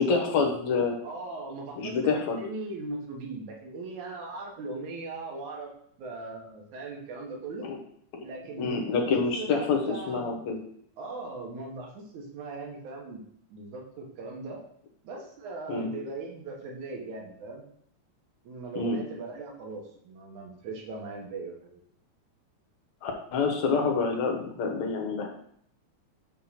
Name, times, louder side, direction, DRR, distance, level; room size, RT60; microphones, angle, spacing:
voice 1, 0.0-1.0 1.8-2.4 7.7-7.8 8.6-10.6 15.7-15.9 18.8-19.0 23.0-25.3, left 4 dB, 70° left, 1 dB, 2.4 m, -27 dB
voice 2, 1.0-5.7 6.0-7.7 8.2-10.3 11.0-14.6 15.0-17.7 18.4-21.8, right 3 dB, 75° right, -1 dB, 2.8 m, -39 dB
6.6 x 3.8 x 5.7 m, 0.65 s
omnidirectional pair, 3.4 m